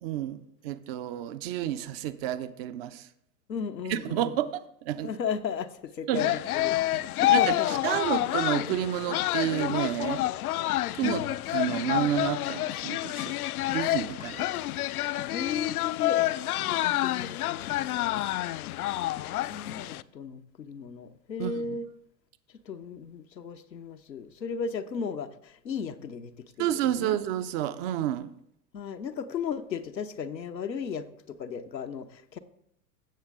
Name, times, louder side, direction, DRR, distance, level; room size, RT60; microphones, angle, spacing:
voice 1, 0.0-3.1 3.9-5.1 6.1-6.4 6.9-10.2 10.9-13.3 13.6-14.7 21.4-21.8 26.6-28.3, right 11 dB, 35° right, 0.6 m, -30 dB
voice 2, 3.5-4.3 5.0-6.9 7.2-7.8 11.0-11.2 15.3-18.2 19.4-21.9 22.7-26.3 26.6-27.2 28.7-32.4, left 6 dB, 85° left, 0.9 m, -35 dB
sound 1, 6.2-20.0, left 16 dB, 60° left, 0.5 m, -28 dB
16.0 x 6.5 x 3.6 m
figure-of-eight pair, 95°, 50 cm